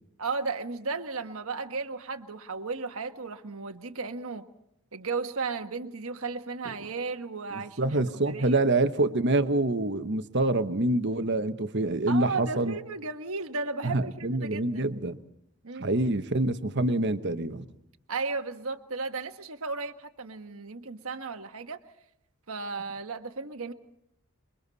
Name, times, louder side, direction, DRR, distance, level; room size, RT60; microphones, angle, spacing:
voice 1, 0.2-4.4 4.9-8.6 12.1-15.0 15.6-16.0 18.1-21.8 22.5-23.7, right 4 dB, 70° right, 7 dB, 1.4 m, -35 dB
voice 2, 7.5-12.7 13.8-15.2 15.8-17.6, right 2 dB, 50° right, 9 dB, 1.2 m, -26 dB
28.0 x 22.5 x 4.2 m, 0.79 s
head